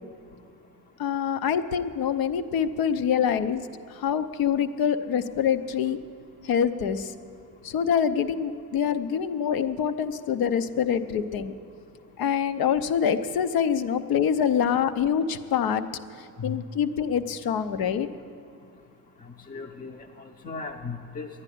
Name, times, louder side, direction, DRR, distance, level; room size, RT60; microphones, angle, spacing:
voice 1, 1.0-6.0 6.4-7.1 7.6-11.5 12.2-15.9 16.2-18.1, left 8 dB, 85° left, 11 dB, 0.7 m, -25 dB
voice 2, 19.5-21.3, left 4 dB, 25° left, 3 dB, 0.5 m, -36 dB
11.5 x 9.7 x 10.0 m, 2.3 s
cardioid pair, 155°, 35 cm